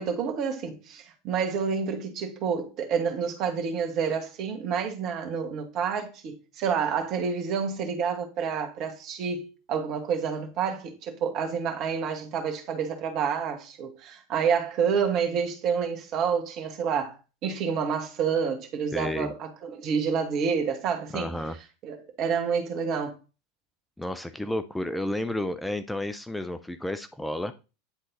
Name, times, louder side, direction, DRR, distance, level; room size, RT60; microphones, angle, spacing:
voice 1, 0.0-17.2 17.4-21.3 21.8-23.2, right 6 dB, 45° right, 1.8 m, -28 dB
voice 2, 18.9-19.3 21.1-21.6 24.0-27.5, left 1 dB, 5° left, 0.7 m, -31 dB
9.8 x 3.9 x 4.1 m
figure-of-eight pair, 80°, 0 cm